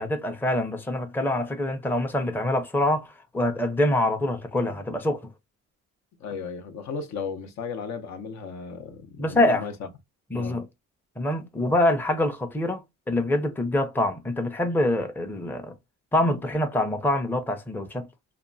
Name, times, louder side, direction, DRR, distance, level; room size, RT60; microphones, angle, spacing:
voice 1, 0.0-5.3 9.2-9.7 10.3-10.7 11.2-15.7 16.1-18.1, left 1 dB, 5° left, 0.5 m, -25 dB
voice 2, 6.2-9.7 10.3-10.6, left 5 dB, 65° left, 0.7 m, -35 dB
2.9 x 2.2 x 2.5 m
cardioid pair, 90°, 30 cm